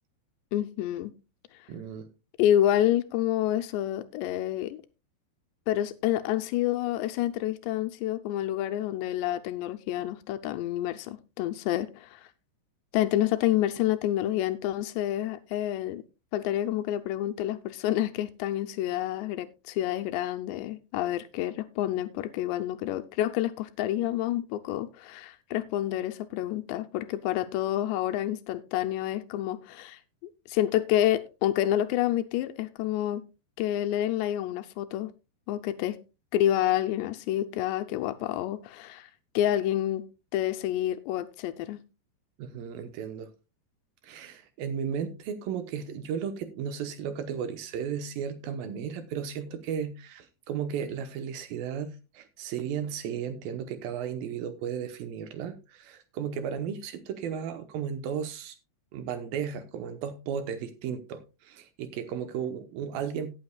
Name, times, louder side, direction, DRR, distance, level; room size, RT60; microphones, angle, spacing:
voice 1, 0.5-1.1 2.4-4.8 5.7-12.3 12.9-16.0 16.3-30.0 30.5-33.2 33.6-35.1 35.5-36.0 36.3-39.1 39.4-40.0 40.3-41.8, left 12 dB, 80° left, 2.8 m, -28 dB
voice 2, 1.7-2.1 42.4-43.3 44.0-58.6 58.9-63.3, right 7 dB, 75° right, 2.3 m, -34 dB
17.5 x 8.8 x 2.3 m
omnidirectional pair, 5.0 m